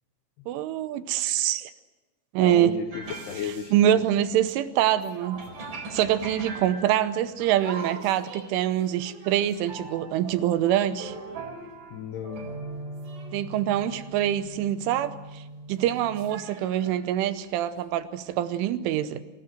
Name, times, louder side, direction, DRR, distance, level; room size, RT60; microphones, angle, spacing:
voice 1, 0.5-1.7 2.3-2.7 3.7-5.4 5.9-11.2 13.3-19.2, right 11 dB, 80° right, 12 dB, 3.2 m, -25 dB
voice 2, 2.4-4.0 11.9-12.6, left 8 dB, 75° left, 7 dB, 2.5 m, -34 dB
sound 1, 2.9-4.7 4.9-17.1 17.7-17.8 18.3-18.7, right 2 dB, 45° right, 5.0 m, -41 dB
26.0 x 18.0 x 7.8 m, 1.2 s
omnidirectional pair, 5.9 m